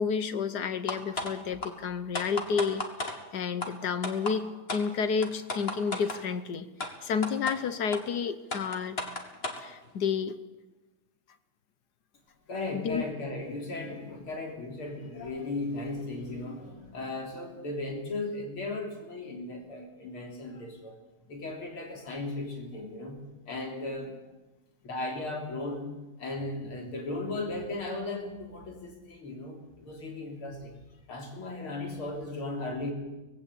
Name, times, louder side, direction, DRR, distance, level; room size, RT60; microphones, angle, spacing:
voice 1, 0.0-2.8 3.3-6.7 7.0-9.0 9.6-10.3 12.7-13.0, left 6 dB, 60° left, 12 dB, 1.3 m, -30 dB
sound 1, 0.9-1.3 1.6-1.7 2.1-3.1 3.6-3.7 4.0-4.3 4.7-4.8 5.2-6.2 6.8-6.9 7.2-7.5 7.9-8.0 8.5-9.6, left 2 dB, 30° left, 2.0 m, -33 dB
voice 2, 12.5-20.9 21.3-24.1 24.8-32.9, left 2 dB, 80° left, 1 dB, 4.3 m, -36 dB
19.0 x 16.5 x 8.3 m, 1.1 s
omnidirectional pair, 2.3 m